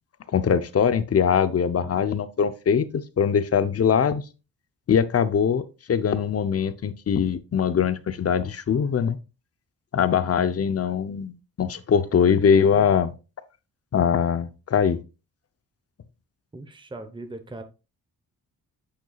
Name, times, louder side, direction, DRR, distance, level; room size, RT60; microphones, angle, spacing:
voice 1, 0.3-4.2 4.9-9.2 9.9-13.1 13.9-15.0, left 7 dB, 40° left, 0.7 m, -22 dB
voice 2, 16.5-17.6, right 2 dB, 15° right, 0.9 m, -39 dB
8.3 x 6.2 x 2.4 m
cardioid pair, 95°, 36 cm